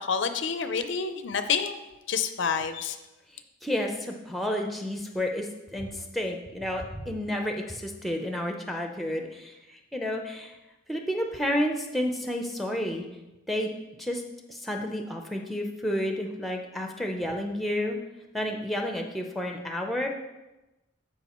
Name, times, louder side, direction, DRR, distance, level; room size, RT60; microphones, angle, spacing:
voice 1, 0.0-1.7 2.1-3.0, left 6 dB, 60° left, 9 dB, 0.5 m, -28 dB
voice 2, 3.6-10.6 10.9-13.0 13.5-13.7 14.0-14.2 14.5-18.0 18.3-20.1, equal, ahead, 2 dB, 0.6 m, -31 dB
13.0 x 4.8 x 3.0 m, 1.0 s
head